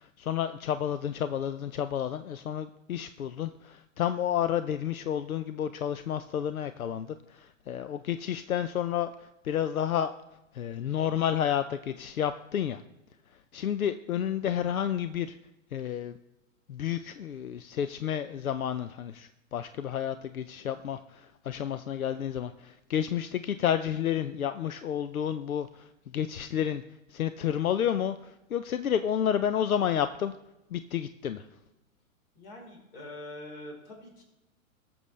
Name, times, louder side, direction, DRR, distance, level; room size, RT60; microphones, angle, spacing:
voice 1, 0.0-10.1 10.5-12.8 13.3-15.4 15.7-16.2 16.7-26.8 27.1-30.3 30.7-31.5, left 9 dB, 85° left, 12 dB, 0.6 m, -31 dB
voice 2, 32.3-34.2, left 1 dB, 45° left, 0 dB, 4.1 m, -44 dB
18.0 x 7.0 x 3.2 m, 0.95 s
figure-of-eight pair, 115°, 41 cm